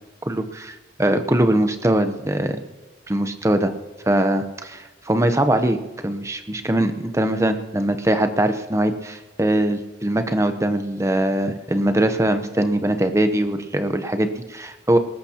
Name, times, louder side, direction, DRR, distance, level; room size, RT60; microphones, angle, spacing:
voice 1, 0.2-2.6 3.1-3.7 4.1-5.8 6.0-15.0, right 1 dB, 15° right, 8 dB, 0.8 m, -21 dB
19.5 x 15.5 x 2.9 m, 1.2 s
head